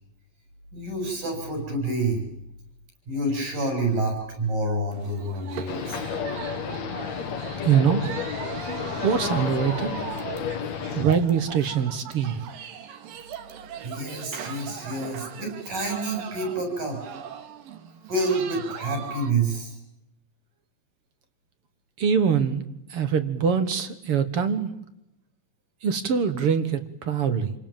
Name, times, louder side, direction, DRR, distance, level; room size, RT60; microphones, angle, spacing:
voice 1, 0.7-2.2 3.1-6.0 13.8-17.2 18.1-19.8, right 2 dB, 70° right, 3 dB, 9.4 m, -28 dB
sound 1, 4.9-19.3, right 8 dB, 90° right, 3.5 m, -39 dB
sound 2, 5.7-11.0, left 6 dB, 60° left, 2.8 m, -31 dB
voice 2, 7.6-8.0 9.0-10.0 10.9-12.4 22.0-22.6 22.9-24.7 25.8-27.5, right 7 dB, 55° right, 11 dB, 1.9 m, -23 dB
28.5 x 18.0 x 9.1 m, 0.86 s
omnidirectional pair, 3.9 m